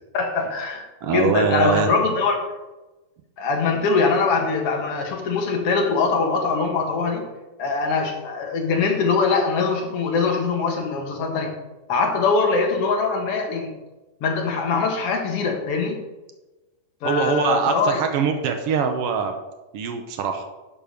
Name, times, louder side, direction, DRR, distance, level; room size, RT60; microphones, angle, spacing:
voice 1, 0.1-2.4 3.4-7.3 7.6-11.5 11.9-13.8 14.2-16.0 17.0-18.0, left 4 dB, 55° left, 2 dB, 2.1 m, -22 dB
voice 2, 1.0-1.9 17.0-19.3 19.7-20.4, right 6 dB, 90° right, 5 dB, 1.3 m, -23 dB
11.5 x 5.1 x 5.2 m, 1.1 s
omnidirectional pair, 3.7 m